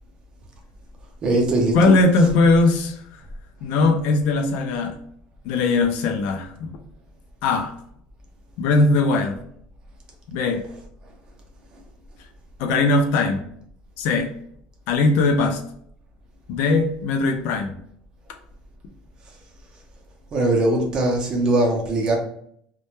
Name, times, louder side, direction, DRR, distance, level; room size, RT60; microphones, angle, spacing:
voice 1, 1.2-2.3 10.6-10.8 20.3-22.2, right 2 dB, 25° right, 0.5 m, -21 dB
voice 2, 1.7-3.2 3.6-5.0 5.4-6.7 7.4-7.7 8.6-9.4 10.3-10.6 12.6-13.4 14.0-14.3 14.9-15.6 16.5-17.8, left 3 dB, 60° left, 0.4 m, -20 dB
2.1 x 2.1 x 2.9 m
cardioid pair, 165°, 3 cm